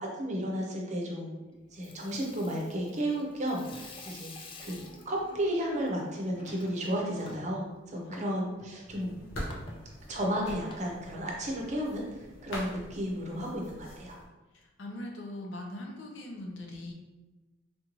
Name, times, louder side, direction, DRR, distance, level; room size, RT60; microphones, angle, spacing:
voice 1, 0.0-9.1 10.1-14.2, equal, 40° right, -1 dB, 0.6 m, -33 dB
Water tap faucet / Sink (filling or washing), 1.6-11.8, left 2 dB, 25° left, 0.3 m, -50 dB
voice 2, 8.1-8.8 14.5-16.9, left 1 dB, 70° left, 1 dB, 0.6 m, -41 dB
sound 1, 8.9-14.2, equal, 85° left, 1.1 m, -44 dB
3.5 x 2.6 x 3.0 m, 1.2 s
head